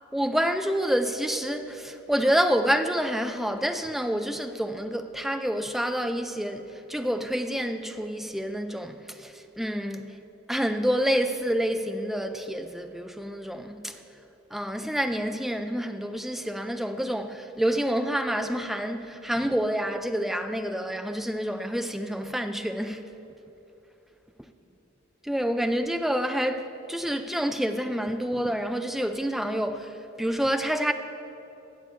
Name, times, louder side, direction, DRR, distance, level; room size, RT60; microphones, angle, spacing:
voice 1, 0.1-10.2 10.5-14.0 14.5-23.1 25.2-30.9, equal, ahead, 0.4 m, -28 dB
16.0 x 6.9 x 4.4 m
head